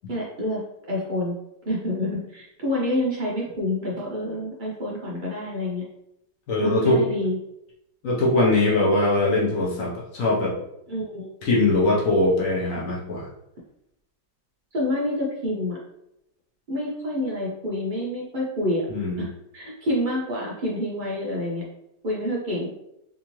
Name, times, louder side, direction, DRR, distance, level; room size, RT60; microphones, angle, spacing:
voice 1, 0.1-0.6 0.9-1.4 1.7-5.8 6.6-7.4 8.7-9.1 10.9-11.3 14.7-15.8 16.7-18.8 19.2-19.3 19.5-21.6 22.0-22.7, left 1 dB, 90° right, -5 dB, 0.4 m, -28 dB
voice 2, 6.5-7.0 8.0-10.5 11.4-13.3 18.9-19.2, left 2 dB, 55° left, -4 dB, 1.0 m, -21 dB
3.4 x 2.7 x 3.0 m, 0.83 s
omnidirectional pair, 2.0 m